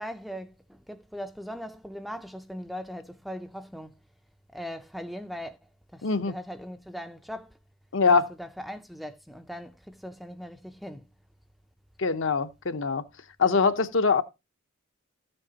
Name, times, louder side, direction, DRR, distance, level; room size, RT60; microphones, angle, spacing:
voice 1, 0.0-3.9 4.5-5.6 5.9-7.5 8.4-11.0, equal, ahead, 0.4 m, -39 dB
voice 2, 6.0-6.3 7.9-8.3 12.0-13.0 13.4-14.2, left 4 dB, 60° left, 0.7 m, -23 dB
13.5 x 7.6 x 2.8 m
head